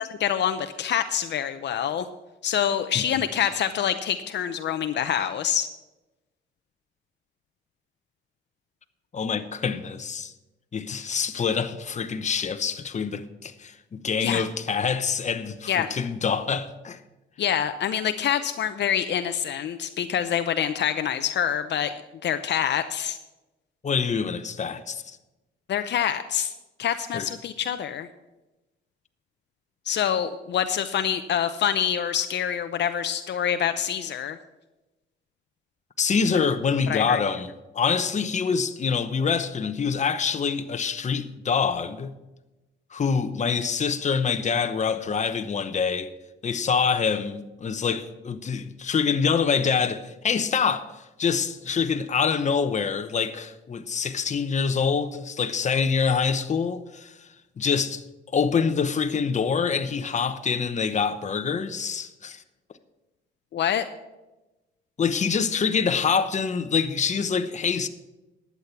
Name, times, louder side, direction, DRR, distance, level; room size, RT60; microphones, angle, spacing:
voice 1, 0.0-2.1 2.4-5.7 14.2-14.4 15.7-15.9 17.4-21.9 22.2-23.2 25.7-26.5 26.8-28.1 29.9-34.4 36.9-37.2 63.5-63.9, left 9 dB, 60° left, 0.7 m, -26 dB
voice 2, 9.1-10.3 10.7-17.0 23.8-25.2 27.1-27.3 36.0-42.1 42.9-46.1 46.4-57.3 57.6-58.0 58.3-62.4 65.0-67.9, left 6 dB, 35° left, 0.9 m, -25 dB
11.5 x 8.4 x 5.8 m
cardioid pair, 90°, 20 cm